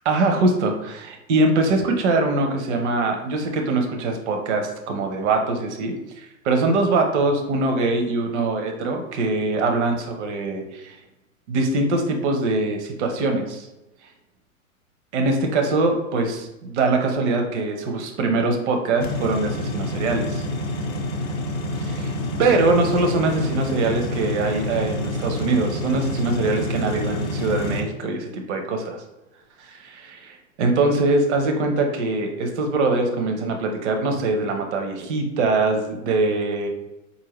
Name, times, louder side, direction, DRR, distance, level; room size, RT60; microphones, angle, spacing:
voice 1, 0.0-11.0 11.5-13.7 15.1-20.4 22.4-29.0 29.6-36.7, right 3 dB, 55° right, 3 dB, 0.8 m, -23 dB
sound 1, 19.0-27.8, left 1 dB, 25° left, 0.4 m, -28 dB
4.3 x 2.8 x 3.0 m, 0.96 s
hypercardioid pair, 105°, 41 cm